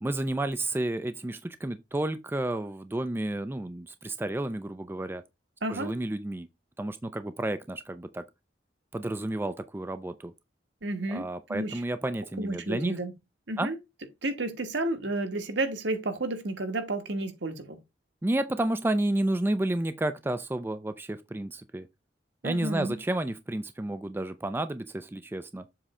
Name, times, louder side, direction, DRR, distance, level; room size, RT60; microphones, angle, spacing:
voice 1, 0.0-5.2 5.7-6.5 6.8-8.2 8.9-10.3 11.1-13.0 13.6-13.7 18.2-21.9 22.4-25.7, right 1 dB, 10° right, 0.4 m, -31 dB
voice 2, 5.6-5.9 10.8-11.2 11.5-11.8 12.4-13.1 13.5-13.8 14.2-17.8 22.4-23.0, right 2 dB, 70° right, 1.4 m, -31 dB
7.5 x 3.2 x 4.8 m
head